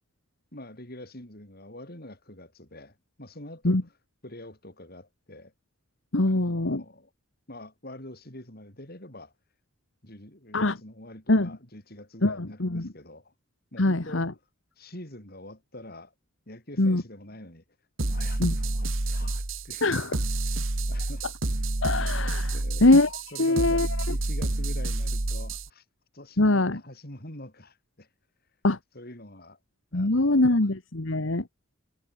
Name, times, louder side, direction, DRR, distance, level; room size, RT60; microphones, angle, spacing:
voice 1, 0.5-3.8 4.2-5.5 6.2-7.1 7.5-9.3 10.0-13.3 13.7-14.2 14.8-16.1 16.5-17.6 18.1-20.1 20.4-20.6 20.9-21.3 22.4-22.9 23.3-23.8 24.1-25.8 26.1-28.1 28.9-29.6 29.9-30.6, left 1 dB, 50° left, 6.3 m, -45 dB
voice 2, 6.1-6.8 10.5-10.8 11.3-11.6 12.2-12.9 13.8-14.3 16.8-17.0 18.4-18.5 19.8-20.1 21.8-22.5 22.8-24.1 26.4-26.8 28.6-28.8 29.9-31.5, left 2 dB, 70° left, 1.6 m, -23 dB
sound 1, 18.0-25.7, right 2 dB, 75° right, 2.0 m, -29 dB
head